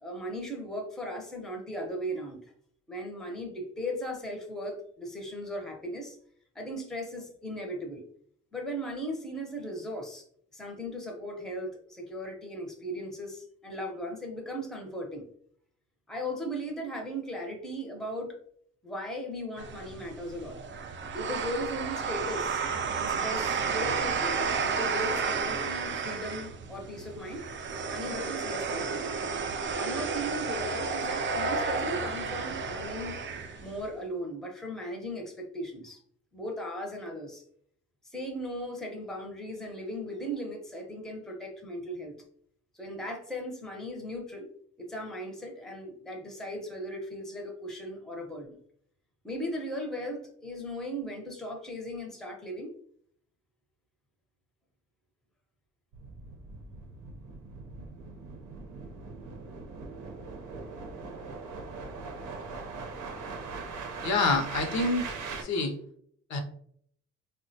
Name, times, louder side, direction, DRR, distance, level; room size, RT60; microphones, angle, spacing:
voice 1, 0.0-2.4 2.9-6.2 6.5-8.0 8.5-10.3 10.5-15.3 16.1-18.4 18.8-20.6 21.1-22.6 22.9-27.5 27.9-29.1 29.7-33.2 33.6-36.0 36.3-37.4 38.0-42.1 42.7-44.5 44.8-48.5 49.2-52.7, equal, ahead, 1 dB, 0.6 m, -37 dB
sound 1, 19.6-33.8, right 5 dB, 40° right, 0.4 m, -32 dB
sound 2, 55.9-65.4, right 4 dB, 80° right, 0.6 m, -40 dB
voice 2, 64.0-65.1 65.4-65.7 66.3-66.4, left 3 dB, 65° left, 4 dB, 0.6 m, -27 dB
3.4 x 2.1 x 2.6 m, 0.64 s
cardioid pair, 90°, 30 cm